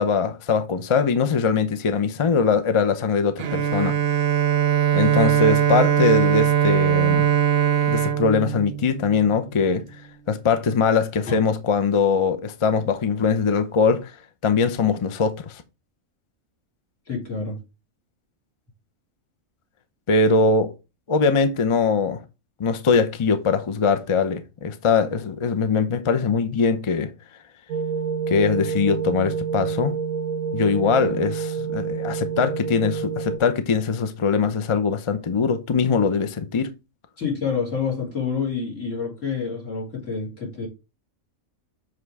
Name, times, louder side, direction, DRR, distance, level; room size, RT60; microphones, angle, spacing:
voice 1, 0.0-3.9 4.9-7.3 7.9-9.8 10.3-14.1 14.4-15.6 20.1-20.7 21.1-22.2 22.6-27.1 28.3-30.0 30.5-36.7, left 5 dB, 40° left, 0.4 m, -21 dB
Bowed string instrument, 3.4-9.4, right 9 dB, 55° right, 0.8 m, -21 dB
voice 2, 17.1-17.6 37.2-40.7, left 5 dB, 65° left, 3.6 m, -28 dB
sound 1, 27.7-33.4, right 6 dB, 85° right, 1.2 m, -28 dB
7.5 x 3.3 x 4.7 m
omnidirectional pair, 1.4 m